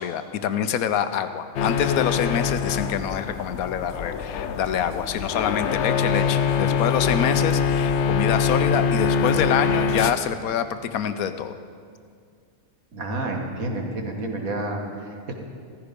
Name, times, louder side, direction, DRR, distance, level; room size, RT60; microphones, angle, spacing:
voice 1, 0.0-11.6, left 8 dB, 85° left, 10 dB, 1.2 m, -26 dB
sound 1, 1.6-10.1, left 6 dB, 60° left, 0.8 m, -24 dB
voice 2, 12.9-15.3, right 2 dB, 80° right, 1 dB, 2.1 m, -30 dB
14.5 x 14.5 x 5.2 m, 2.2 s
omnidirectional pair, 1.5 m